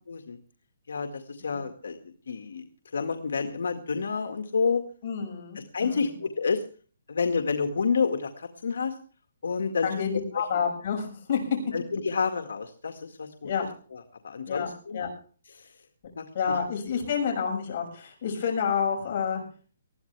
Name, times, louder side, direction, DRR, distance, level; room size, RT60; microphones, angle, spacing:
voice 1, 0.1-0.4 0.9-2.0 2.3-2.7 2.9-4.8 5.7-6.6 7.1-8.9 9.4-9.9 10.3-10.4 11.7-13.5 13.9-15.0 15.5-15.7 16.2-16.3, left 5 dB, 80° left, 5 dB, 1.9 m, -29 dB
voice 2, 5.0-6.1 9.8-11.4 13.4-13.7 14.5-15.1 16.3-19.4, left 6 dB, 40° left, 1 dB, 6.4 m, -29 dB
20.5 x 15.0 x 3.4 m, 0.41 s
hypercardioid pair, 165°, 0 cm